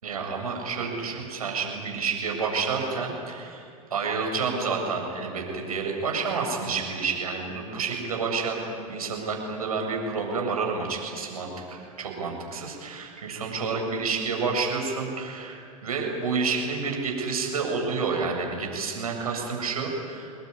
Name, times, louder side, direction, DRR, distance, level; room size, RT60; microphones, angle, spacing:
voice 1, 0.0-3.6 3.9-20.5, right 4 dB, 90° right, 1 dB, 7.4 m, -29 dB
26.5 x 21.5 x 9.9 m, 2.6 s
hypercardioid pair, 110°, 18 cm